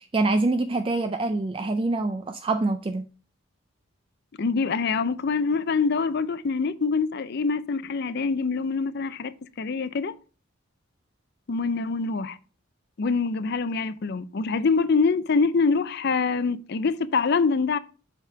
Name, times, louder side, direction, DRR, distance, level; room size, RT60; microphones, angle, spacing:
voice 1, 0.1-3.0, right 2 dB, 25° right, 0.4 m, -25 dB
voice 2, 4.4-10.1 11.5-12.4 13.0-17.8, left 4 dB, 50° left, 0.5 m, -25 dB
7.4 x 3.5 x 5.6 m
head